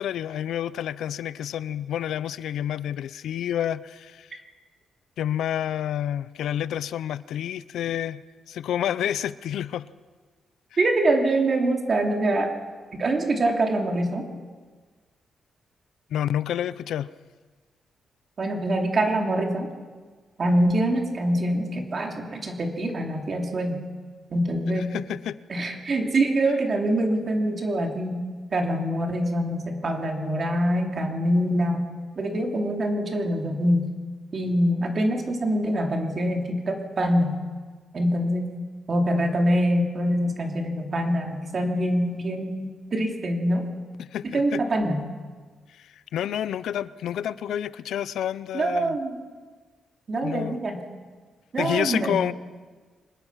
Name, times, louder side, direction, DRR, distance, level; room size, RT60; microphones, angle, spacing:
voice 1, 0.0-4.4 5.2-8.2 8.5-9.9 16.1-17.1 24.9-25.4 44.0-44.6 45.8-49.0 50.2-50.6 51.6-52.3, left 10 dB, 85° left, 17 dB, 0.6 m, -29 dB
voice 2, 10.8-12.5 12.9-14.3 18.4-19.7 20.4-23.8 24.3-24.9 25.5-28.2 28.5-31.9 32.2-33.8 34.3-37.4 37.9-38.5 38.9-43.6 44.2-45.0 48.5-49.2 50.1-50.8 51.5-52.2, right 1 dB, 40° right, 2 dB, 2.8 m, -24 dB
24.0 x 20.0 x 5.8 m, 1.4 s
cardioid pair, 130°, 0 cm